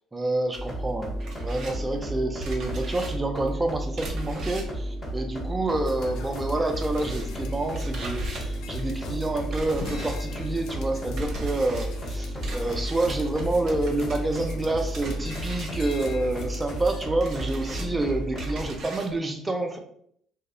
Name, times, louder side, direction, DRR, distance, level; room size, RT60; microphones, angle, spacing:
voice 1, 0.0-19.8, right 2 dB, 20° right, 4 dB, 0.5 m, -28 dB
sound 1, 0.5-6.1 6.3-19.2, right 2 dB, 55° right, 0.7 m, -40 dB
sound 2, 0.6-18.6, equal, 20° left, 0.8 m, -33 dB
sound 3, 5.8-17.0, left 5 dB, 65° left, 0.4 m, -43 dB
2.7 x 2.0 x 2.4 m, 0.66 s
hypercardioid pair, 60°, 0 cm